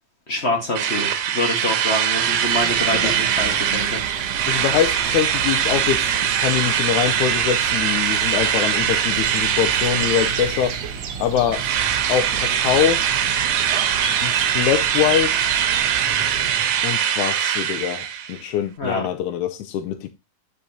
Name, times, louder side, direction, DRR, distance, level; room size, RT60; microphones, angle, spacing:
voice 1, 0.3-4.0 18.8-19.0, left 1 dB, 50° left, 0.7 m, -25 dB
Drill, 0.8-11.1 11.5-18.4, right 9 dB, 85° right, 2.7 m, -22 dB
sound 1, 2.1-16.9, right 6 dB, 65° right, 1.8 m, -32 dB
voice 2, 4.5-10.8 11.2-11.7 12.1-13.0 14.2-15.5 16.8-20.1, left 10 dB, 80° left, 1.8 m, -23 dB
8.7 x 6.2 x 2.9 m
omnidirectional pair, 4.0 m